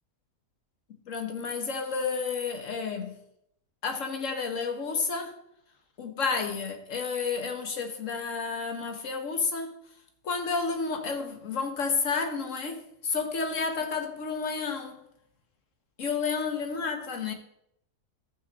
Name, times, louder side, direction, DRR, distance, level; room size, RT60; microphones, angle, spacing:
voice 1, 1.1-3.2 3.8-5.4 6.0-9.8 10.2-15.0 16.0-17.3, left 5 dB, 55° left, 1.5 m, -31 dB
13.5 x 6.1 x 4.1 m
omnidirectional pair, 1.6 m